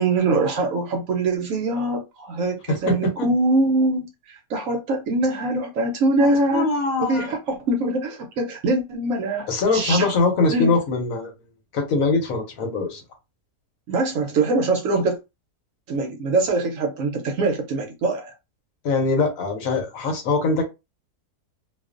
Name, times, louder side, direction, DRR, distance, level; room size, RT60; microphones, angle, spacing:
voice 1, 0.0-6.7 7.0-10.1 10.5-10.7 13.9-15.2 15.9-18.3, right 2 dB, 70° right, 0.8 m, -23 dB
voice 2, 2.7-3.1 6.2-7.3 9.5-11.3 11.7-13.0 18.8-20.6, left 3 dB, 65° left, 1.1 m, -22 dB
2.4 x 2.3 x 2.4 m
omnidirectional pair, 1.7 m